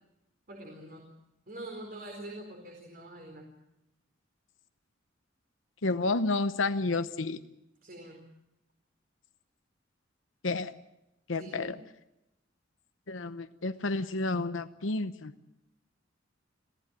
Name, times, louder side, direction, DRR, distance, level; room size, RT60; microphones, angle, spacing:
voice 1, 0.5-1.1 1.5-3.5 7.8-8.2 11.3-11.8, right 1 dB, 50° right, 2 dB, 4.3 m, -44 dB
voice 2, 5.8-7.4 10.4-10.7 11.3-11.8 13.1-15.3, left 3 dB, 80° left, 10 dB, 0.9 m, -30 dB
27.0 x 16.0 x 9.1 m, 0.90 s
head